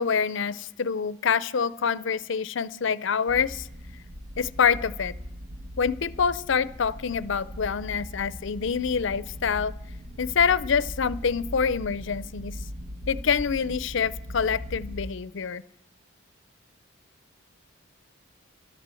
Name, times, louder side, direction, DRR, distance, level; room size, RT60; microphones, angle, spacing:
voice 1, 0.0-3.7 4.4-5.2 5.8-9.7 10.2-12.6 13.1-15.6, left 6 dB, 60° left, 18 dB, 0.5 m, -26 dB
sound 1, 3.3-15.0, equal, 80° right, 1.2 m, -39 dB
12.0 x 11.0 x 7.6 m, 0.77 s
head